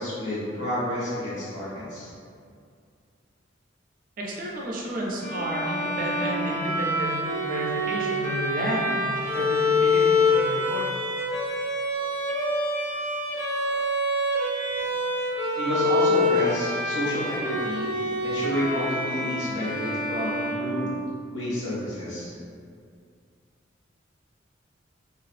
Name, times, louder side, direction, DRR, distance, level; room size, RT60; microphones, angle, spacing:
voice 1, 0.0-2.1 15.5-17.9 18.2-21.0 21.3-22.4, left 1 dB, 90° left, -9 dB, 1.1 m, -29 dB
voice 2, 4.2-10.9, right 1 dB, 45° right, -3 dB, 0.4 m, -31 dB
Bowed string instrument, 5.2-21.3, left 1 dB, 10° left, 0.5 m, -26 dB
2.6 x 2.4 x 2.4 m, 2.2 s
head